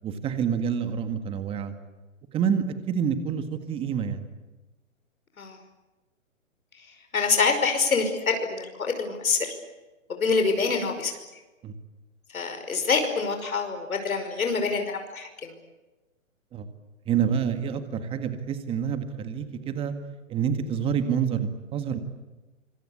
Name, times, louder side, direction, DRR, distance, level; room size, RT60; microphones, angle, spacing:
voice 1, 0.0-1.7 2.3-4.2 11.6-11.7 16.5-16.7 17.1-19.9 20.3-22.0, right 7 dB, 15° right, 9 dB, 1.8 m, -27 dB
voice 2, 7.1-9.5 10.1-11.1 12.3-15.5, left 4 dB, 85° left, 6 dB, 5.6 m, -26 dB
25.5 x 23.0 x 8.6 m, 1.1 s
hypercardioid pair, 155°, 41 cm